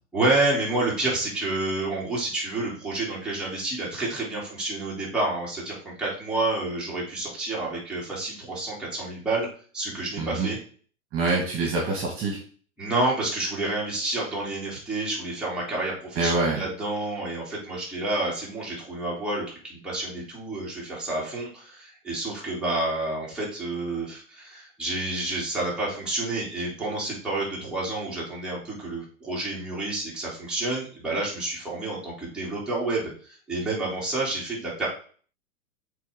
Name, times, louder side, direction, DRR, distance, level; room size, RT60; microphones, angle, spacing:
voice 1, 0.1-9.5 9.7-10.6 12.8-34.9, right 2 dB, ahead, -7 dB, 3.2 m, -29 dB
voice 2, 10.2-10.5 11.1-12.4 16.2-16.6, right 3 dB, 30° right, 0 dB, 2.2 m, -25 dB
7.9 x 4.0 x 3.7 m, 0.43 s
hypercardioid pair, 120°, 41 cm